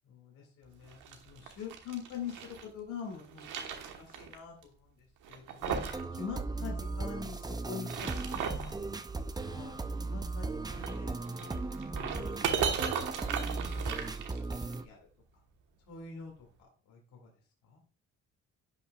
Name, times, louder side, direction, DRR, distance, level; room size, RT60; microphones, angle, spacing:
voice 1, 0.1-4.9 5.3-5.8 6.1-8.8 9.5-9.8 10.0-11.6 12.0-12.6 13.3-13.9 14.5-15.0 15.9-16.3 16.9-17.3 17.7-17.8, left 6 dB, 90° left, 1 dB, 2.2 m, -45 dB
sound 1, 0.8-2.7 3.1-4.4 4.6-4.7 5.2-6.0 6.3-6.4 7.7-8.7 10.7-14.7, right 7 dB, 90° right, 1.3 m, -36 dB
sound 2, 5.6-14.8, right 3 dB, 15° right, 0.5 m, -37 dB
11.0 x 5.7 x 2.3 m, 0.39 s
cardioid pair, 90°, 30 cm